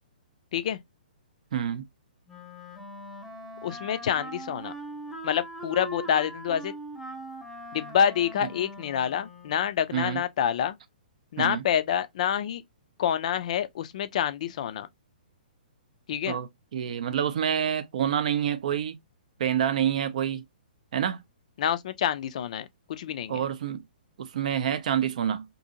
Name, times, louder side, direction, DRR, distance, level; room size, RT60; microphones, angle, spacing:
voice 1, 1.5-1.8 9.9-10.2 11.4-11.6 16.3-19.0 19.4-20.4 20.9-21.2 23.3-23.8 24.2-25.4, right 9 dB, 50° right, 0.5 m, -27 dB
Wind instrument woodwind instrument, 2.3-9.8, right 1 dB, ahead, 0.8 m, -41 dB
voice 2, 3.6-4.7 5.2-6.7 7.7-10.8 11.3-12.6 13.0-14.9 16.1-16.4 21.6-23.4, left 9 dB, 45° left, 0.3 m, -27 dB
2.7 x 2.6 x 2.6 m
figure-of-eight pair, 120°, 5 cm